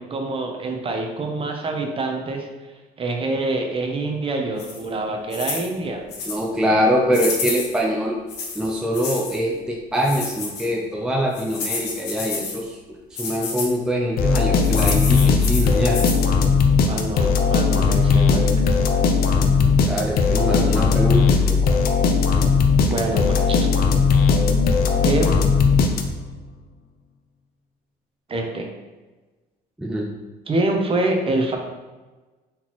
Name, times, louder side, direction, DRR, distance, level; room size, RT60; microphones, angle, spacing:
voice 1, 0.0-2.5 3.0-6.0 16.9-18.5 22.9-23.6 25.0-25.4 28.3-28.7 30.5-31.6, right 2 dB, 35° right, 3 dB, 0.8 m, -25 dB
sound 1, 4.6-4.9 5.3-5.7 6.1-6.4 7.1-7.8 8.3-9.4 10.0-10.7 11.3-12.6 13.2-13.7 14.6-16.2, left 4 dB, 90° left, 1.0 m, -30 dB
voice 2, 6.3-8.2 8.6-12.8 13.1-16.0 19.6-21.6 29.8-30.1, equal, 5° right, -1 dB, 0.4 m, -23 dB
sound 2, 14.2-26.4, left 5 dB, 65° left, 0.6 m, -18 dB
4.3 x 3.9 x 3.0 m, 1.2 s
cardioid pair, 110°, 17 cm